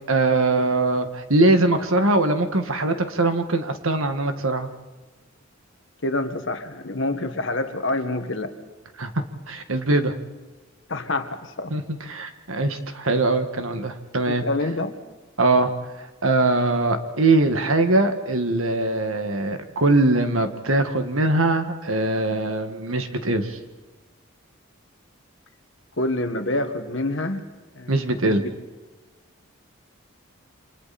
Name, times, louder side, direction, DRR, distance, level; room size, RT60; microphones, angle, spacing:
voice 1, 0.1-4.7 9.0-10.1 11.7-11.8 12.1-14.4 15.4-15.7 16.2-23.6 27.9-28.4, right 2 dB, 70° right, 7 dB, 1.9 m, -22 dB
voice 2, 6.0-8.6 10.9-11.7 14.3-15.0 26.0-27.5 27.8-28.5, left 2 dB, 60° left, 7 dB, 1.8 m, -27 dB
29.0 x 26.5 x 4.3 m, 1.2 s
head